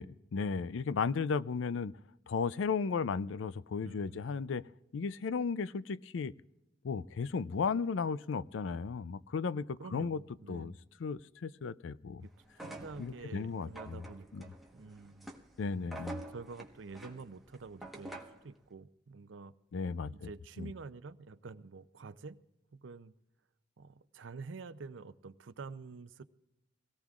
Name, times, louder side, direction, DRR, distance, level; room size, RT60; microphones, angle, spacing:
voice 1, 0.0-2.0 2.3-4.6 4.9-6.3 6.8-10.2 10.5-10.7 11.0-12.2 13.0-14.0 14.3-14.4 15.6-16.2 19.7-20.3 20.6-20.7, left 5 dB, 85° left, 0.4 m, -35 dB
voice 2, 3.8-4.5 9.8-10.8 12.2-12.3 12.6-15.3 16.3-19.5 20.1-22.4 22.7-23.1 23.8-26.2, right 4 dB, 80° right, 0.6 m, -48 dB
sound 1, 12.5-18.5, right 2 dB, ahead, 1.2 m, -48 dB
24.0 x 17.5 x 2.4 m
head